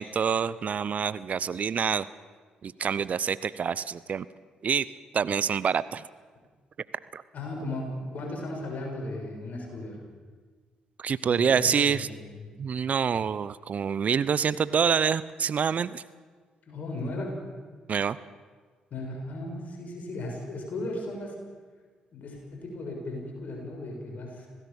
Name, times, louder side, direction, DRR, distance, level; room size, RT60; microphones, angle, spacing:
voice 1, 0.0-2.0 2.6-4.3 4.6-4.8 5.1-6.0 7.1-7.2 11.0-12.1 12.6-16.0 17.9-18.2, right 7 dB, 50° right, 17 dB, 0.7 m, -26 dB
voice 2, 7.3-10.0 11.3-12.4 16.7-17.4 18.9-21.4 22.1-24.5, left 2 dB, 55° left, 1 dB, 6.9 m, -36 dB
26.5 x 17.5 x 7.2 m, 1.5 s
hypercardioid pair, 45°, 3 cm